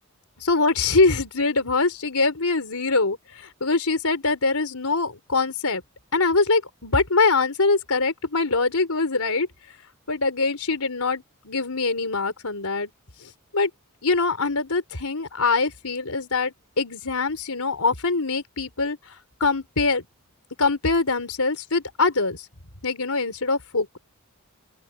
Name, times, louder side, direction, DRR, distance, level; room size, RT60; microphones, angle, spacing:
voice 1, 0.4-5.8 6.1-9.5 10.1-12.9 13.5-13.7 14.0-20.0 20.6-22.5 22.8-24.0, left 3 dB, 85° left, 4.1 m, -23 dB
open air
head